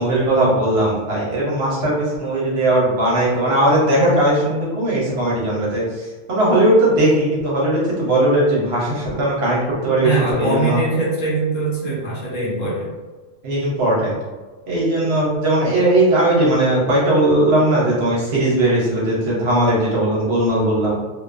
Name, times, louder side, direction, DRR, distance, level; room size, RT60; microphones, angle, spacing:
voice 1, 0.0-5.8 6.3-10.8 13.4-14.2 14.7-21.0, right 1 dB, 60° right, -6 dB, 0.8 m, -18 dB
voice 2, 10.0-12.9, right 2 dB, 75° left, -5 dB, 1.2 m, -22 dB
2.5 x 2.2 x 2.4 m, 1.3 s
omnidirectional pair, 1.4 m